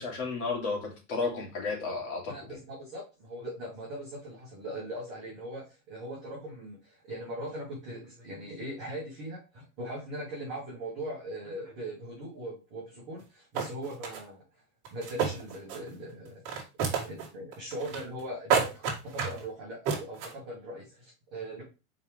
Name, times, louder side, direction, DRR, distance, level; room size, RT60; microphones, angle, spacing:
voice 1, 0.0-2.6, left 4 dB, 50° left, -1 dB, 2.8 m, -33 dB
voice 2, 2.3-14.6 14.9-16.4 16.9-21.6, right 1 dB, ahead, -23 dB, 0.3 m, -40 dB
sound 1, 13.2-13.3 13.5-14.2 14.8-15.9 16.3-17.3 17.5-18.2 18.5-19.4 19.9-20.3, right 6 dB, 35° right, 2.2 m, -29 dB
6.0 x 4.7 x 3.3 m, 0.29 s
supercardioid pair, 165°, 47 cm